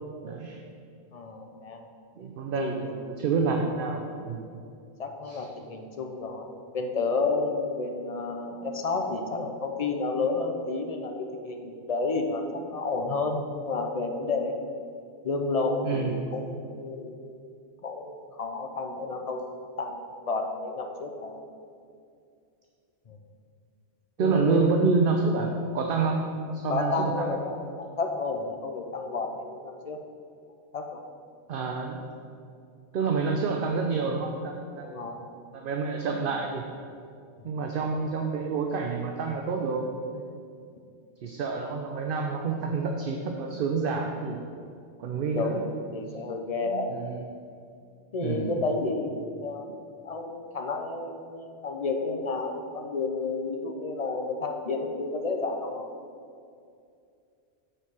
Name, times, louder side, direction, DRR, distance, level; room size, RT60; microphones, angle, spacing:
voice 1, 0.2-0.6 2.2-4.5 5.2-5.5 15.8-16.2 24.2-26.2 26.5-27.3 31.5-32.0 32.9-34.9 35.5-36.6 37.4-40.3 41.2-44.4 45.0-45.6 46.6-47.2 48.2-48.6, right 4 dB, 60° right, 2 dB, 0.7 m, -28 dB
voice 2, 1.1-1.8 2.5-2.9 5.0-14.5 15.2-17.1 17.8-21.3 23.1-23.2 24.2-24.7 26.7-30.0 30.7-31.0 34.8-35.2 45.3-45.6 45.9-46.9 48.1-49.7 50.0-55.9, left 3 dB, 40° left, 3 dB, 0.6 m, -31 dB
8.7 x 4.5 x 4.7 m, 2.4 s
omnidirectional pair, 1.1 m